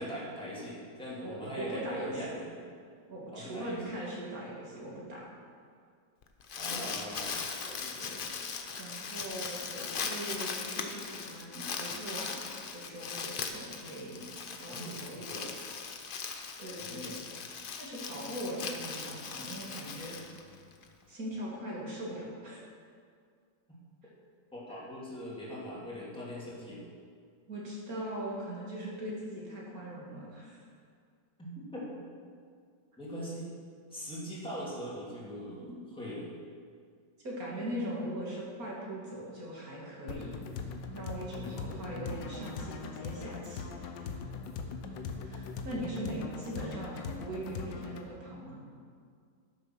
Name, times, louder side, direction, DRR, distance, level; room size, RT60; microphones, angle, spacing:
voice 1, 0.0-2.5 3.3-3.9 6.6-7.4 14.7-15.4 16.8-17.2 24.5-26.8 31.4-32.0 33.0-33.5 33.9-36.3 41.3-41.6, equal, 5° left, -7 dB, 2.6 m, -41 dB
voice 2, 1.2-2.4 3.1-5.3 6.7-7.0 7.6-8.2 8.8-14.3 14.6-15.5 16.6-17.2 17.8-20.2 21.1-22.6 27.5-30.6 35.7-35.8 37.2-40.3 40.9-44.1 45.2-48.6, right 1 dB, 50° right, -4 dB, 2.7 m, -40 dB
Crumpling crinkling, 6.2-20.8, left 5 dB, 65° left, 0.5 m, -39 dB
sound 1, 40.1-48.1, left 5 dB, 80° left, 1.5 m, -40 dB
12.0 x 6.8 x 6.0 m, 2.1 s
omnidirectional pair, 1.9 m